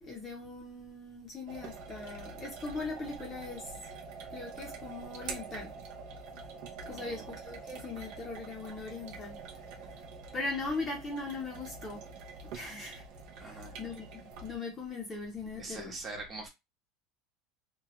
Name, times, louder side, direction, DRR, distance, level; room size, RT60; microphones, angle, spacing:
voice 1, 0.0-3.8 4.3-5.7 6.9-9.4 10.3-12.0 12.5-13.0 13.4-14.1 14.4-15.9, left 3 dB, 20° left, 0.7 m, -39 dB
sound 1, 1.5-14.6, right 4 dB, 50° right, 0.6 m, -46 dB
voice 2, 6.9-7.4 13.3-13.7 15.6-16.5, right 3 dB, 20° right, 1.0 m, -43 dB
3.0 x 2.3 x 3.0 m
cardioid pair, 175°, 0 cm